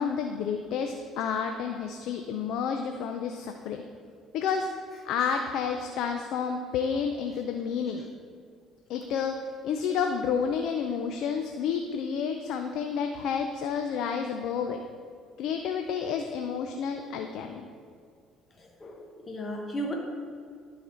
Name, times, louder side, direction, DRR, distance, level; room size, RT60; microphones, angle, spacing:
voice 1, 0.0-3.8 4.3-4.7 5.0-8.0 8.9-9.3 9.6-14.8 15.4-17.6, left 6 dB, 75° left, 5 dB, 0.5 m, -30 dB
voice 2, 18.6-19.9, equal, 35° left, 0 dB, 1.1 m, -35 dB
11.5 x 4.1 x 4.4 m, 2.2 s
supercardioid pair, 80°, 0 cm